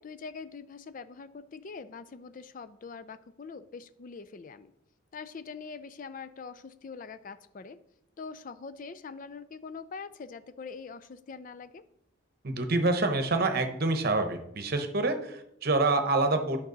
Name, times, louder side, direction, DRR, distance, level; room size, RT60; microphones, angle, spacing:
voice 1, 0.0-4.7 5.1-7.8 8.2-11.8, left 5 dB, 40° left, 12 dB, 0.4 m, -43 dB
voice 2, 12.4-16.6, right 2 dB, 50° right, 7 dB, 0.9 m, -27 dB
9.2 x 6.0 x 3.9 m, 0.79 s
head